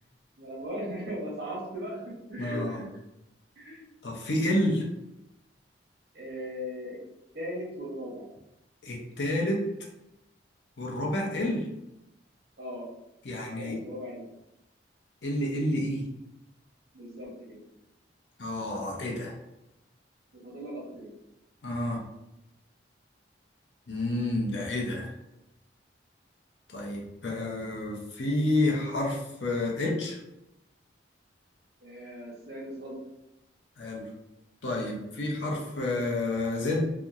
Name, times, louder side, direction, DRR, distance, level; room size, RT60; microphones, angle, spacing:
voice 1, 0.4-2.0 2.3-2.9 3.6-3.9 6.1-7.0 7.3-8.2 12.6-12.9 13.6-14.2 16.9-17.6 20.3-21.1 31.8-33.0, equal, 60° right, -4 dB, 0.9 m, -38 dB
voice 2, 2.4-2.8 4.0-4.8 8.8-9.7 10.8-11.7 13.2-13.8 15.2-16.1 18.4-19.3 21.6-22.0 23.9-25.2 26.7-30.2 33.8-34.1 34.6-36.9, left 1 dB, 70° left, -1 dB, 0.6 m, -29 dB
2.8 x 2.1 x 2.4 m, 0.90 s
head